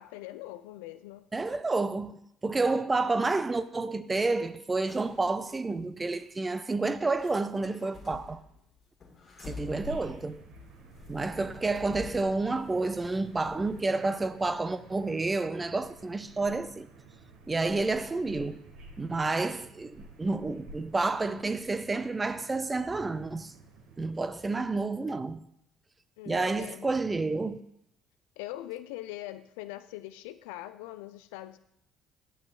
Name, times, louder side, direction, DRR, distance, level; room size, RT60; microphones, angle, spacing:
voice 1, 0.0-1.3 26.2-26.9 28.4-31.6, left 15 dB, 70° left, 0.3 m, -42 dB
voice 2, 1.3-8.4 9.5-10.4 11.1-16.9 17.5-18.6 19.0-23.5 24.0-25.4 26.3-27.6, right 3 dB, 20° right, 0.5 m, -30 dB
sound 1, 4.9-5.6 6.1-6.3 7.1-14.1 14.4-14.5, left 4 dB, 40° left, 1.7 m, -49 dB
sound 2, 9.5-24.2, right 2 dB, 60° right, 1.2 m, -51 dB
9.0 x 8.5 x 2.4 m
figure-of-eight pair, 50°, 0 cm